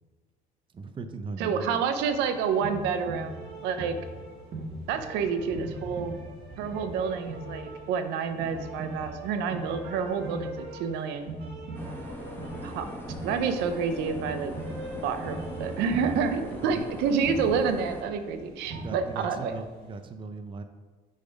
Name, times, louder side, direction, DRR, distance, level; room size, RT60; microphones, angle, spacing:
voice 1, 0.7-1.8 16.6-16.8 18.7-20.6, right 4 dB, 30° right, 8 dB, 0.5 m, -38 dB
voice 2, 1.4-3.9 4.9-6.2 6.6-11.4 12.6-12.9 13.2-14.6 15.0-19.6, right 6 dB, 90° right, 8 dB, 0.6 m, -29 dB
sound 1, 2.0-19.7, right 1 dB, 70° right, 1.5 m, -40 dB
sound 2, 11.7-18.0, left 1 dB, 10° left, 1.2 m, -41 dB
6.7 x 4.0 x 5.1 m, 1.3 s
cardioid pair, 110°, 17 cm